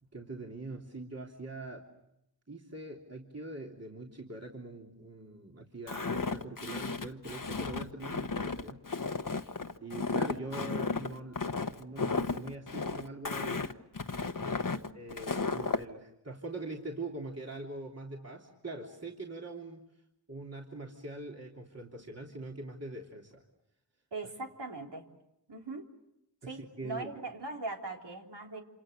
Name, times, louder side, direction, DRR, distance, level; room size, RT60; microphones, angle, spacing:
voice 1, 0.1-1.9 2.5-8.9 9.8-13.8 14.9-19.9 20.3-23.4 26.4-27.1, right 2 dB, 35° right, -1 dB, 3.3 m, -43 dB
Walk footsteps, 5.9-15.8, left 4 dB, 50° left, 1.2 m, -34 dB
voice 2, 24.1-25.1 25.5-25.9 26.5-28.6, right 3 dB, 80° right, 0 dB, 3.6 m, -40 dB
27.5 x 27.5 x 6.8 m, 0.85 s
cardioid pair, 40°, 41 cm